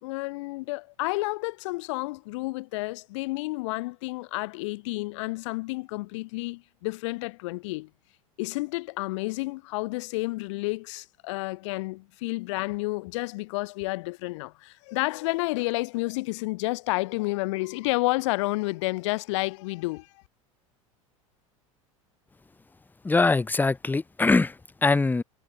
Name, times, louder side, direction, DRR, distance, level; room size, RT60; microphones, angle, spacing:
voice 1, 0.0-7.9 8.4-20.2, left 23 dB, 60° left, 3.5 m, -30 dB
voice 2, 23.0-25.2, left 3 dB, 10° left, 1.1 m, -23 dB
figure-of-eight pair, 80°, 17 cm